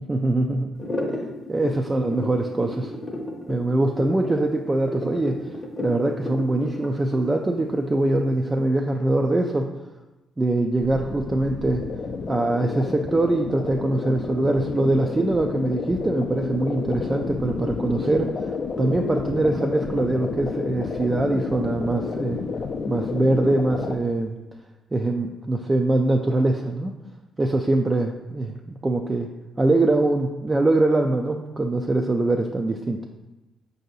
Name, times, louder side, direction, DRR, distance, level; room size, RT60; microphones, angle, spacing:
voice 1, 0.1-0.7 1.5-2.9 3.5-5.4 5.8-9.7 10.4-11.8 12.3-22.4 22.9-24.3 24.9-26.9 27.4-29.3 29.6-33.0, right 2 dB, 20° right, 2 dB, 0.3 m, -23 dB
sound 1, 0.8-8.6, left 1 dB, 20° left, 0.7 m, -33 dB
sound 2, 10.8-23.9, left 5 dB, 55° left, 0.4 m, -30 dB
4.7 x 2.7 x 3.9 m, 1.0 s
cardioid pair, 90°, 0 cm